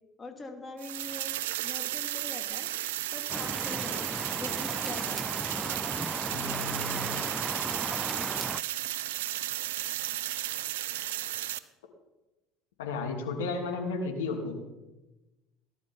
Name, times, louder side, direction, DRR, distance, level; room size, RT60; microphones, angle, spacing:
voice 1, 0.2-2.7 3.1-5.2, left 2 dB, 25° left, 5 dB, 2.8 m, -43 dB
sound 1, 0.8-11.6, right 13 dB, 75° right, 0.6 m, -34 dB
Rain, 3.3-8.6, right 2 dB, 10° right, 0.4 m, -36 dB
voice 2, 6.3-7.2 12.8-14.6, left 3 dB, 75° left, 2 dB, 2.9 m, -34 dB
18.0 x 11.5 x 5.6 m, 1.1 s
hypercardioid pair, 70°, 0 cm